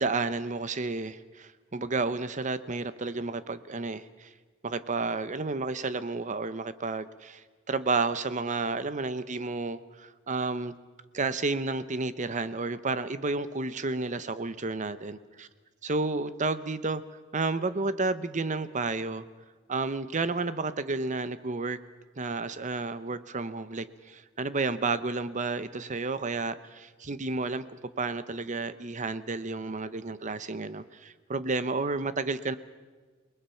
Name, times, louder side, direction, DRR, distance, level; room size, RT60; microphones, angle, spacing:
voice 1, 0.0-4.3 4.6-10.7 11.1-15.2 15.8-17.0 17.3-19.2 19.7-21.8 22.2-32.5, right 3 dB, 35° right, 13 dB, 0.9 m, -31 dB
29.0 x 20.0 x 5.7 m, 1.4 s
head